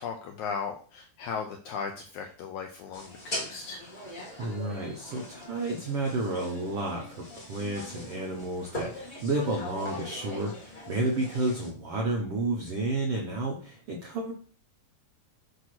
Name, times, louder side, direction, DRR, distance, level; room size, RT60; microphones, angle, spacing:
voice 1, 0.0-3.9, left 6 dB, 80° left, 3 dB, 1.8 m, -37 dB
sound 1, 2.9-11.7, left 1 dB, 45° left, 0.6 m, -41 dB
voice 2, 4.4-14.3, right 2 dB, 70° right, -1 dB, 1.4 m, -31 dB
7.9 x 2.9 x 6.1 m, 0.41 s
omnidirectional pair, 4.2 m